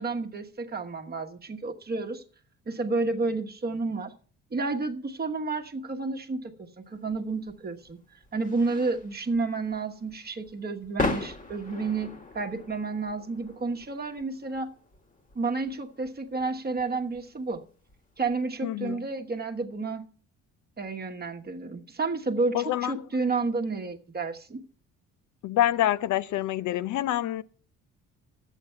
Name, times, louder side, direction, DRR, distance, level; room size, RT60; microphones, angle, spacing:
voice 1, 0.0-2.2 2.7-4.1 4.5-8.0 8.3-14.7 15.3-17.6 18.2-20.0 20.8-24.6, right 3 dB, 30° right, 1.2 m, -31 dB
sound 1, 7.1-18.4, left 2 dB, 25° left, 1.5 m, -39 dB
voice 2, 18.6-19.0 22.5-23.1 25.4-27.4, left 13 dB, 75° left, 0.6 m, -26 dB
11.0 x 8.3 x 5.6 m
cardioid pair, 90°, 30 cm